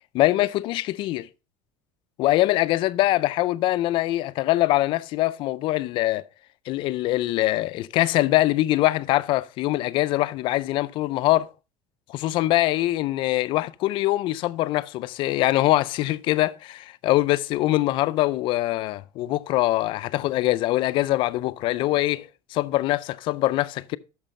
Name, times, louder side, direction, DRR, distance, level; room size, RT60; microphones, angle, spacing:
voice 1, 0.1-1.3 2.2-6.2 6.7-11.5 12.1-24.0, left 16 dB, 45° left, 0.4 m, -23 dB
9.0 x 6.5 x 4.2 m
cardioid pair, 165°, 12 cm